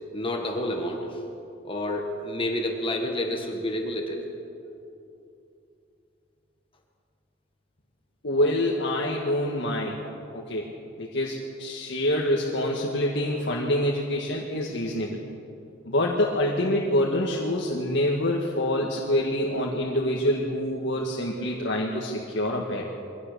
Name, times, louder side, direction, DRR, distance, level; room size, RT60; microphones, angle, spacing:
voice 1, 0.1-1.2 1.6-4.2, left 1 dB, 25° left, 2 dB, 1.8 m, -29 dB
voice 2, 8.2-10.0 10.3-10.7 11.0-15.2 15.8-22.9, left 1 dB, 65° left, -2 dB, 1.8 m, -26 dB
23.0 x 17.0 x 6.9 m, 2.7 s
head